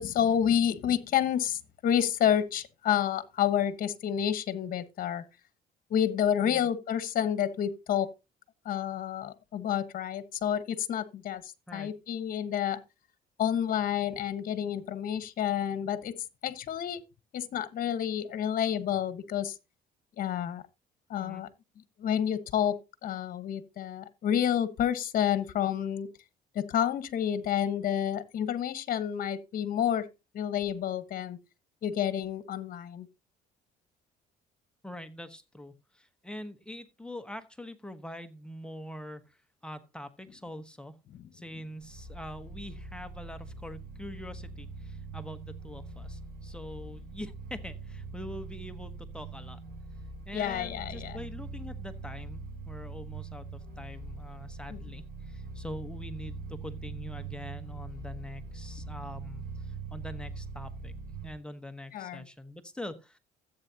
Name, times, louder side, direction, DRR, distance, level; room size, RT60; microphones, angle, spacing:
voice 1, 0.0-5.2 5.9-8.1 8.6-12.8 13.4-16.1 16.4-17.0 17.3-19.6 20.2-20.6 21.1-21.5 22.0-26.1 26.5-30.1 30.3-31.4 31.8-33.1 41.1-41.2 50.3-51.2 54.7-54.8 61.9-62.2, left 9 dB, 55° left, 1.3 m, -29 dB
voice 2, 34.8-40.9 41.3-49.6 50.3-60.9 61.2-63.2, left 1 dB, 5° left, 1.1 m, -44 dB
sound 1, 41.8-61.3, right 3 dB, 60° right, 6.0 m, -42 dB
14.0 x 8.3 x 2.8 m
cardioid pair, 110°, 17 cm